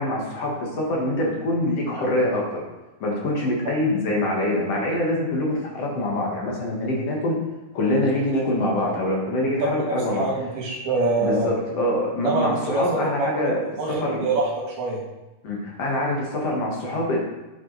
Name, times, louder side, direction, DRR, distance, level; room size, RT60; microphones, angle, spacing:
voice 1, 0.0-2.6 3.0-7.4 7.7-10.3 11.2-13.6 14.0-14.3 15.4-17.2, left 1 dB, 55° left, -2 dB, 1.9 m, -24 dB
voice 2, 9.6-11.5 12.2-15.0, right 2 dB, 65° right, -3 dB, 4.2 m, -25 dB
9.3 x 7.3 x 4.0 m, 1.1 s
omnidirectional pair, 4.8 m